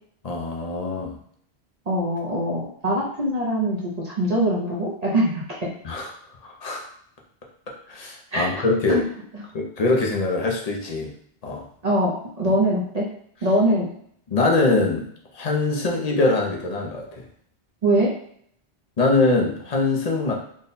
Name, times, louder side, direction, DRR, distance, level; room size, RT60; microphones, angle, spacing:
voice 1, 0.2-1.2 5.8-6.1 6.4-6.9 7.9-9.0 9.5-11.1 11.4-11.7 14.3-15.1 15.3-17.2 19.0-20.3, left 3 dB, 45° left, 0 dB, 0.7 m, -23 dB
voice 2, 1.9-5.7 8.3-8.5 8.9-9.0 11.8-13.1 13.4-13.9 17.8-18.1, right 1 dB, 45° right, -4 dB, 0.7 m, -22 dB
3.7 x 2.2 x 4.0 m, 0.66 s
omnidirectional pair, 1.1 m